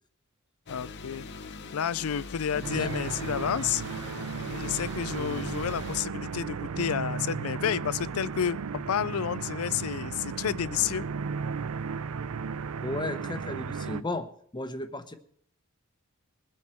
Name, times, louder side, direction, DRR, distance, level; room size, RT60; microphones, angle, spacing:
voice 1, 0.7-1.3 1.7-3.8 4.5-11.1, left 8 dB, 75° left, 0.4 m, -30 dB
sound 1, 0.7-6.0, left 3 dB, 55° left, 0.9 m, -42 dB
voice 2, 2.5-3.0 5.2-5.5 12.8-15.1, left 2 dB, 20° left, 0.9 m, -35 dB
sound 2, 2.6-14.0, right 5 dB, 80° right, 0.5 m, -35 dB
21.5 x 7.6 x 4.4 m
head